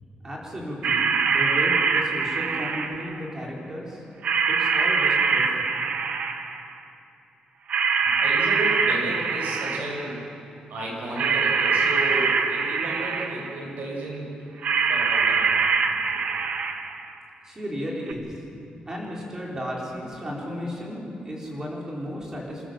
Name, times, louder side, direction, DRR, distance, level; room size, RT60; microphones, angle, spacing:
voice 1, 0.2-4.0 4.5-5.6 17.4-18.3 18.9-22.6, equal, 20° right, -3 dB, 4.4 m, -34 dB
sound 1, 0.8-3.2 4.2-6.7 7.7-10.1 11.2-13.6 14.6-17.0 18.1-18.2, right 5 dB, 60° right, 1.2 m, -23 dB
voice 2, 8.0-14.5 14.8-16.2, right 1 dB, 75° right, -2 dB, 6.9 m, -33 dB
27.0 x 14.0 x 7.5 m, 2.7 s
wide cardioid pair, 160°, 3 cm